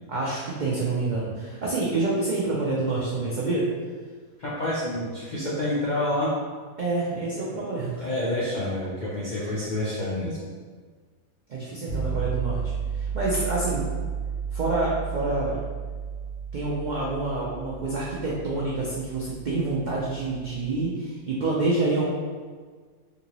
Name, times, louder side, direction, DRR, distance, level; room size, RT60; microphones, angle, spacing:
voice 1, 0.1-3.7 6.8-8.1 11.5-13.9 14.5-15.6 16.5-22.1, right 2 dB, 80° right, -5 dB, 0.4 m, -27 dB
voice 2, 4.4-6.3 8.0-10.4, left 1 dB, 60° left, -8 dB, 0.4 m, -28 dB
sound 1, 11.9-20.8, right 6 dB, 85° left, 1.2 m, -33 dB
3.4 x 2.7 x 2.9 m, 1.5 s
omnidirectional pair, 1.5 m